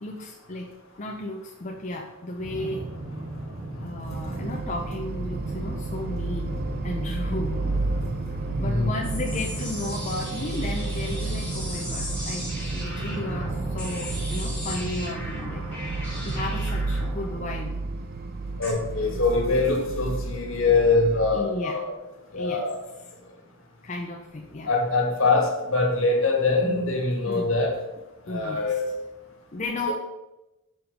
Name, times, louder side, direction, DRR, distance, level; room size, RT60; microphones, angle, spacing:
voice 1, 0.0-0.7 1.0-2.9 3.8-7.6 8.6-15.6 16.2-17.8 21.3-21.8 22.3-22.6 23.8-24.7 27.3-27.5 28.3-28.8 29.5-29.9, left 2 dB, 35° left, 0 dB, 0.6 m, -34 dB
sound 1, 2.4-17.1, right 1 dB, 85° right, 1.4 m, -35 dB
sound 2, 4.1-21.4, right 3 dB, 45° right, 0.4 m, -32 dB
sound 3, 9.0-18.7, equal, 5° left, 2.5 m, -38 dB
voice 2, 18.6-21.9 22.3-22.7 24.6-27.8 28.3-28.9 29.9-30.0, left 3 dB, 70° left, 1 dB, 1.6 m, -23 dB
5.1 x 4.9 x 5.1 m, 0.98 s
head